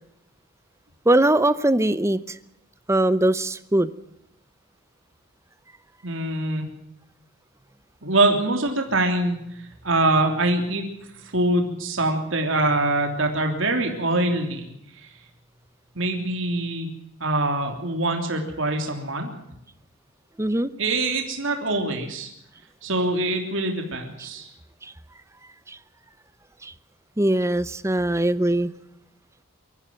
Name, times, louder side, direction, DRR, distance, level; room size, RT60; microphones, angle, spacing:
voice 1, 1.1-2.4 2.9-3.9 20.4-20.7 24.8-24.9 25.7-25.8 26.6-26.7 27.2-28.7, right 1 dB, 15° right, 0.8 m, -21 dB
voice 2, 6.0-6.7 8.0-9.4 9.8-10.8 11.3-14.7 15.9-16.9 17.2-19.3 20.8-22.3 22.8-24.5, right 2 dB, 60° right, 3.3 m, -24 dB
23.0 x 14.5 x 7.7 m
head